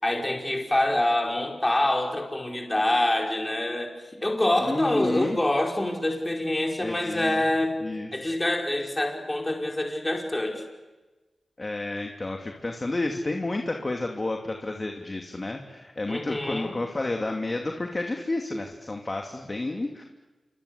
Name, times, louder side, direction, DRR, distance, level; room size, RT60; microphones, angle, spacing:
voice 1, 0.0-4.0 4.2-7.8 8.1-10.6 16.1-16.7, left 1 dB, 20° left, 1 dB, 5.2 m, -26 dB
voice 2, 4.6-5.4 6.8-7.4 7.8-8.1 11.6-20.0, left 2 dB, 35° left, 3 dB, 2.7 m, -31 dB
27.5 x 25.5 x 8.5 m, 1.2 s
cardioid pair, 50°, 0 cm